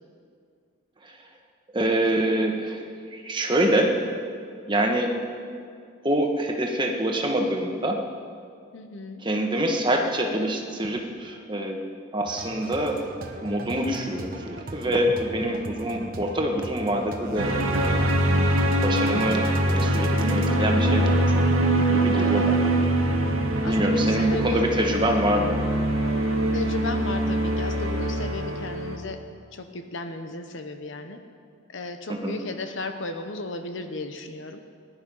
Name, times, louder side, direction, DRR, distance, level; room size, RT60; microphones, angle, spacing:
voice 1, 1.7-2.8 3.1-4.0 4.7-5.1 6.0-8.0 9.2-11.8 12.1-13.0 13.4-18.0 18.8-21.6 21.9-22.7 23.7-25.6 32.1-32.4, right 1 dB, 20° right, 2 dB, 1.4 m, -25 dB
voice 2, 8.7-9.2 18.6-18.9 22.2-22.5 23.6-24.7 26.5-29.2 29.5-31.2 31.7-34.6, left 3 dB, 60° left, 7 dB, 0.9 m, -35 dB
sound 1, 12.3-20.5, right 2 dB, 40° right, 1.1 m, -38 dB
sound 2, 17.4-29.0, right 1 dB, 75° right, 1.8 m, -23 dB
19.5 x 11.0 x 5.5 m, 2.2 s
head